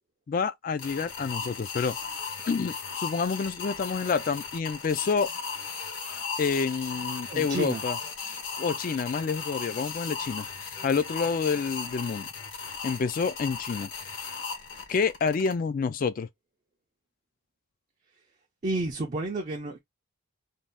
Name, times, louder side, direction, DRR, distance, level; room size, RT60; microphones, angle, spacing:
voice 1, 0.3-5.3 6.4-8.0 8.6-12.3 12.8-13.9 14.9-16.3, left 5 dB, 40° left, 0.3 m, -28 dB
sound 1, 0.8-15.5, left 5 dB, 55° left, 0.9 m, -37 dB
voice 2, 7.3-7.8 18.6-19.8, right 2 dB, 35° right, 0.4 m, -30 dB
2.7 x 2.3 x 3.3 m
head